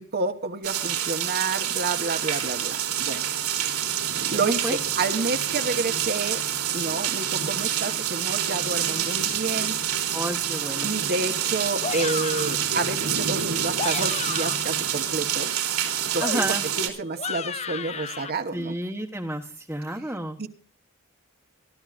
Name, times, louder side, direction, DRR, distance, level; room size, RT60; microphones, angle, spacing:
voice 1, 0.0-3.2 4.3-6.4 6.7-9.8 10.8-15.6 16.1-18.8 20.0-20.1 20.4-20.5, right 3 dB, 45° right, 6 dB, 1.2 m, -29 dB
sound 1, 0.6-16.9, right 9 dB, 90° right, 3.3 m, -27 dB
voice 2, 4.3-4.8 10.1-10.9 16.2-16.6 18.5-20.4, right 1 dB, 10° right, 0 dB, 1.2 m, -31 dB
sound 2, 11.8-12.6 13.6-14.8 16.2-18.3, left 6 dB, 30° left, 0.5 m, -33 dB
24.0 x 13.0 x 2.5 m, 0.41 s
head